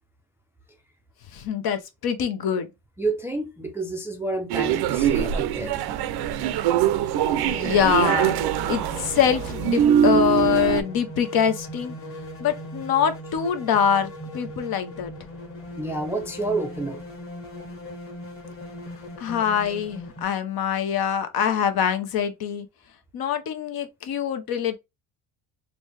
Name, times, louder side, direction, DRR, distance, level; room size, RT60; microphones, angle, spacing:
voice 1, 1.3-2.7 7.4-8.4 8.7-11.9 12.4-15.1 19.2-22.7 23.1-24.8, left 8 dB, 55° left, 0.8 m, -24 dB
voice 2, 3.0-5.9 15.8-17.0, right 2 dB, 5° right, 0.4 m, -29 dB
sound 1, 4.5-10.8, right 10 dB, 55° right, 0.5 m, -23 dB
sound 2, 5.5-20.2, equal, 30° left, 1.6 m, -39 dB
4.0 x 2.2 x 3.2 m
cardioid pair, 110°, 46 cm